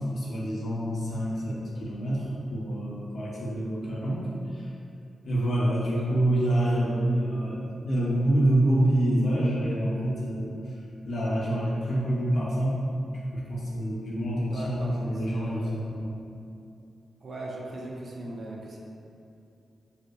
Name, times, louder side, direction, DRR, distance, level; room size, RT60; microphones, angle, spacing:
voice 1, 0.0-4.7 5.2-10.6 11.1-12.8 13.1-16.2, right 1 dB, 55° left, -6 dB, 0.5 m, -27 dB
voice 2, 5.8-6.3 14.4-15.8 17.2-18.8, right 1 dB, 50° right, -3 dB, 0.3 m, -40 dB
2.7 x 2.2 x 2.2 m, 2.6 s
wide cardioid pair, 175°, 0 cm